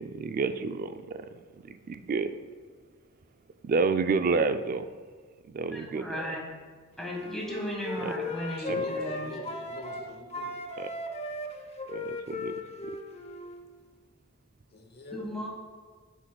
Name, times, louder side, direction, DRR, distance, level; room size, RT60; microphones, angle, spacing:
voice 1, 0.0-2.4 3.6-4.9 5.5-6.2 8.0-8.1 8.7-8.8 10.8-10.9 11.9-12.6, right 4 dB, 45° right, 10 dB, 0.3 m, -30 dB
voice 2, 5.7-6.4 7.0-9.3 15.1-15.5, equal, ahead, -4 dB, 1.6 m, -36 dB
Wind instrument woodwind instrument, 7.0-10.0 10.3-13.6, left 2 dB, 30° left, 0.6 m, -36 dB
voice 3, 8.6-10.5 14.7-15.3, left 1 dB, 50° left, 3 dB, 1.0 m, -44 dB
10.0 x 6.3 x 2.3 m, 1.5 s
head